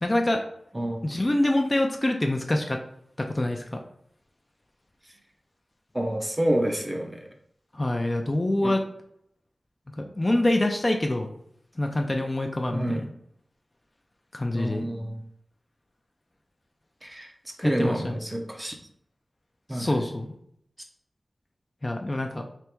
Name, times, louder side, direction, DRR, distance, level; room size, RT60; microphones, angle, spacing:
voice 1, 0.0-0.4 1.0-2.8 3.2-3.8 7.7-8.8 10.0-11.3 11.8-13.0 14.3-14.9 17.6-18.1 19.7-20.3 21.8-22.4, left 1 dB, 30° left, 3 dB, 0.5 m, -25 dB
voice 2, 5.9-7.3 8.6-8.7 12.7-13.0 14.5-15.2 17.0-18.7 19.7-20.0, right 1 dB, 20° right, 3 dB, 0.7 m, -28 dB
3.4 x 3.0 x 4.4 m, 0.70 s
wide cardioid pair, 85°, 0 cm